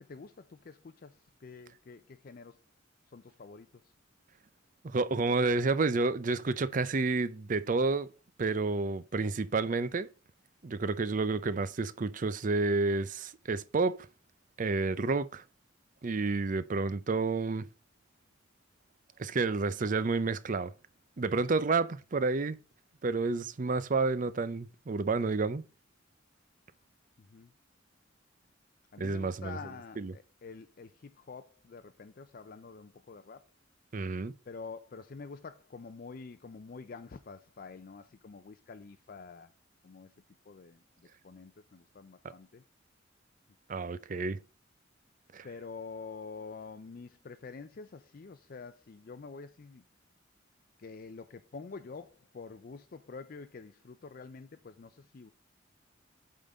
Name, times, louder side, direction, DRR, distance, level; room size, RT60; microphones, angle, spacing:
voice 1, 0.0-2.6 3.1-3.9 27.2-27.5 28.9-33.4 34.5-39.5 39.8-40.1 40.5-40.8 41.2-42.6 45.4-49.8 50.8-55.3, left 4 dB, 50° left, 0.4 m, -47 dB
voice 2, 4.8-8.1 8.4-10.1 10.6-14.1 14.6-15.4 16.0-17.7 19.2-20.7 21.2-22.6 23.0-25.6 29.0-29.6 30.0-30.1 33.9-34.3 43.7-44.4 45.3-45.5, right 3 dB, 40° right, 0.5 m, -30 dB
8.5 x 3.8 x 5.4 m
head